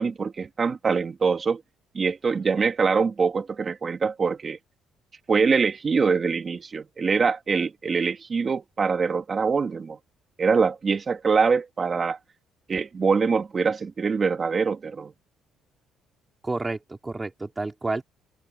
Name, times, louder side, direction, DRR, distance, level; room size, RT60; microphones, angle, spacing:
voice 1, 0.0-1.6 1.9-4.6 5.3-10.0 10.4-12.2 12.7-15.1, right 5 dB, 30° right, 2.1 m, -24 dB
voice 2, 16.4-18.0, right 2 dB, 15° right, 3.4 m, -30 dB
cardioid pair, 135°, 0 cm